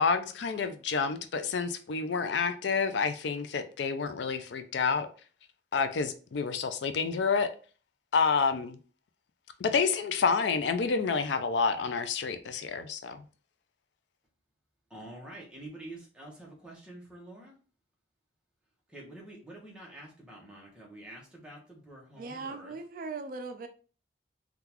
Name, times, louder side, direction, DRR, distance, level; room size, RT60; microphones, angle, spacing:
voice 1, 0.0-5.1 5.7-7.5 8.1-8.8 9.6-13.2, left 5 dB, 70° left, 0.4 m, -29 dB
voice 2, 14.9-17.5 18.9-22.8, right 1 dB, 5° right, 0.9 m, -47 dB
voice 3, 22.2-23.7, right 3 dB, 45° right, 0.4 m, -39 dB
3.7 x 2.3 x 2.9 m
head